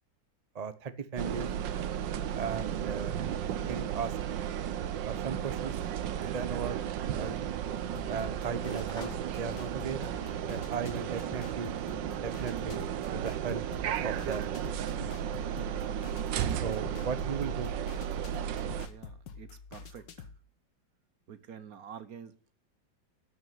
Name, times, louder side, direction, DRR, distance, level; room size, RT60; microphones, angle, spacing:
voice 1, 0.5-1.5 2.3-3.2 3.6-4.1 5.0-5.8 6.2-6.8 7.1-7.5 8.1-10.1 10.5-11.7 12.1-13.6 14.0-14.5 16.6-17.7, right 6 dB, 35° right, 0.6 m, -37 dB
sound 1, 1.2-18.9, right 9 dB, 75° right, 1.5 m, -34 dB
sound 2, 5.3-12.1, left 1 dB, ahead, 3.8 m, -56 dB
sound 3, 7.9-20.4, left 6 dB, 70° left, 1.9 m, -48 dB
voice 2, 18.9-20.3 21.3-22.5, right 8 dB, 55° right, 1.2 m, -48 dB
12.5 x 6.3 x 9.2 m
omnidirectional pair, 2.0 m